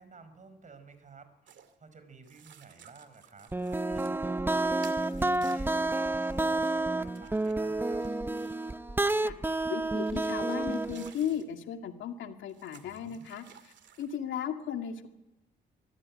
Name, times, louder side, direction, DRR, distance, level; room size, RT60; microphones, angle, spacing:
voice 1, 0.0-8.1 12.8-13.3, right 4 dB, 40° right, 10 dB, 5.1 m, -54 dB
sound 1, 1.5-1.7 2.2-4.2 4.8-8.7 9.4-11.5 12.5-14.2, right 8 dB, 65° right, 2.4 m, -56 dB
sound 2, 3.5-11.1, right 2 dB, 10° right, 0.8 m, -30 dB
voice 2, 9.7-15.1, left 9 dB, 75° left, 5 dB, 2.3 m, -36 dB
24.0 x 14.5 x 9.8 m, 1.0 s
cardioid pair, 90°, 20 cm